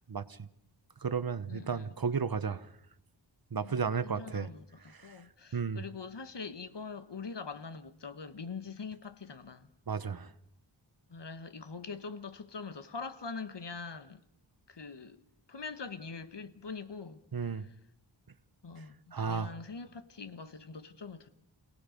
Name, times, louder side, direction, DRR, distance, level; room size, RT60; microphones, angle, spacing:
voice 1, 0.1-0.5 1.0-2.7 3.5-4.5 4.9-5.1 5.5-5.8 9.9-10.3 17.3-17.7 19.1-19.5, right 6 dB, 50° right, 1.1 m, -33 dB
voice 2, 1.5-2.0 3.6-9.7 11.1-14.2 14.7-15.2 15.5-17.7 18.6-21.3, left 4 dB, 65° left, 1.4 m, -43 dB
29.0 x 18.5 x 5.3 m
wide cardioid pair, 75°, 46 cm